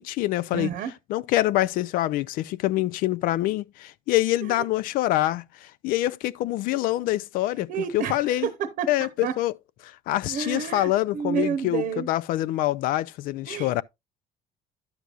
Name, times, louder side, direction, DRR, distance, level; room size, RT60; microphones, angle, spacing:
voice 1, 0.0-0.7 1.1-8.5 8.9-9.5 9.8-13.8, left 15 dB, 75° left, 0.4 m, -25 dB
voice 2, 0.5-0.9 4.4-4.7 7.7-8.9 9.2-9.3 10.3-12.1 13.5-13.8, right 8 dB, 70° right, 0.8 m, -30 dB
10.5 x 6.9 x 2.4 m
cardioid pair, 145°, 15 cm